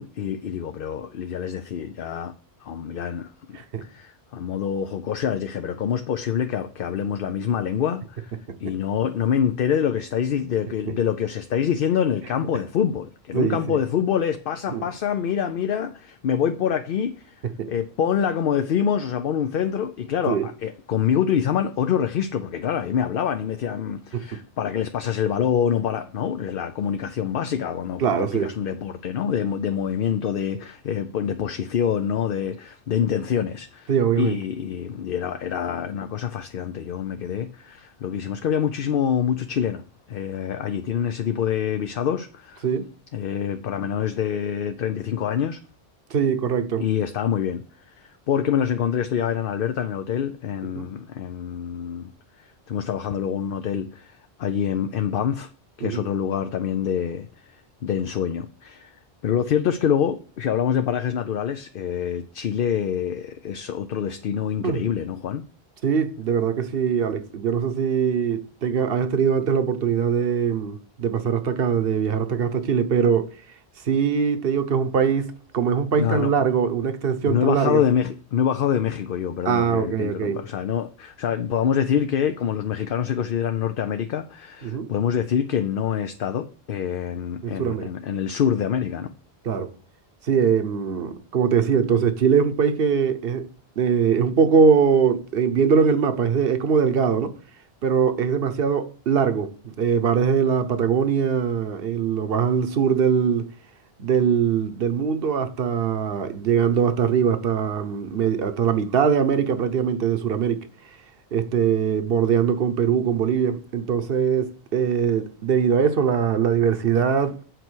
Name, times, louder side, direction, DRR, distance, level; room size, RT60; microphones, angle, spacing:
voice 1, 0.0-2.3 2.6-17.4 17.7-33.9 34.2-42.7 43.1-45.6 46.8-52.1 52.7-55.5 55.8-57.3 57.8-58.9 59.2-65.4 76.0-76.3 77.3-89.1, left 8 dB, 65° left, 0.8 m, -26 dB
voice 2, 13.3-13.8 14.7-14.9 17.6-17.7 20.3-20.5 24.1-24.4 28.0-28.6 33.9-34.4 42.6-42.9 46.1-46.8 50.8-50.9 55.8-56.1 64.6-64.8 65.8-73.3 73.8-77.8 79.4-80.4 84.6-84.9 87.4-87.9 89.4-89.7 90.2-93.5 93.8-97.3 97.8-103.5 104.0-110.7 111.3-117.5, right 7 dB, 65° right, 1.1 m, -22 dB
8.1 x 4.6 x 6.3 m
omnidirectional pair, 1.0 m